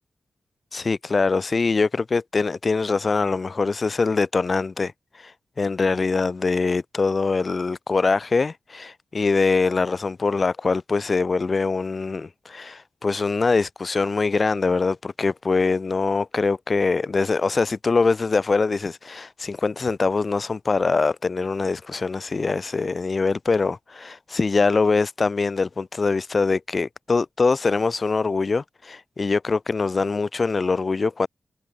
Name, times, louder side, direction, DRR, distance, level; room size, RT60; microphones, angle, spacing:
voice 1, 0.7-4.9 5.2-5.3 5.6-31.3, left 4 dB, 40° left, 2.8 m, -23 dB
wide cardioid pair, 110°, 0 cm